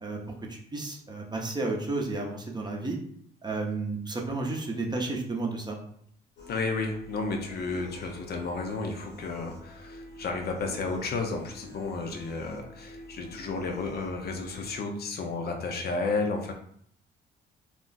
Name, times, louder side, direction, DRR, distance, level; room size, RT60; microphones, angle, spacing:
voice 1, 0.5-3.0 3.4-5.8, right 3 dB, 25° right, 0 dB, 0.6 m, -32 dB
sound 1, 6.4-14.8, left 1 dB, 85° left, 1.0 m, -48 dB
voice 2, 6.5-16.5, left 3 dB, 60° left, 3 dB, 0.6 m, -32 dB
2.4 x 2.0 x 3.9 m, 0.64 s
cardioid pair, 80°, 19 cm